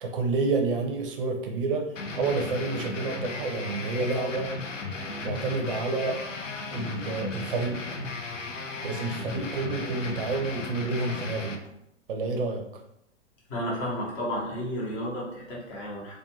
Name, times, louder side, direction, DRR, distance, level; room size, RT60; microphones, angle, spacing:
voice 1, 0.0-1.9 2.1-4.5 5.2-6.2 6.7-7.9 8.8-11.6 12.1-12.6, right 3 dB, 50° right, 2 dB, 0.6 m, -29 dB
sound 1, 2.0-11.6, left 3 dB, 90° left, 0.5 m, -36 dB
voice 2, 13.5-16.2, equal, 25° left, -3 dB, 0.8 m, -32 dB
2.5 x 2.2 x 2.9 m, 0.77 s
figure-of-eight pair, 110°, 37 cm